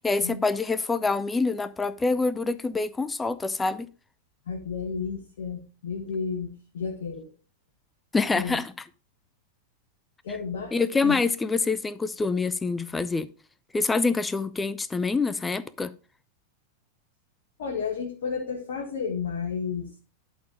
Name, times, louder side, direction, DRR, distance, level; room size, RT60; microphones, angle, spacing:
voice 1, 0.0-3.9 8.1-8.7 10.7-13.3 13.7-15.9, left 4 dB, 10° left, 0.6 m, -26 dB
voice 2, 4.5-7.3 8.4-8.6 10.2-10.7 11.0-11.2 17.6-19.9, left 5 dB, 60° left, 1.6 m, -32 dB
11.5 x 4.6 x 5.0 m
figure-of-eight pair, 90°, 0 cm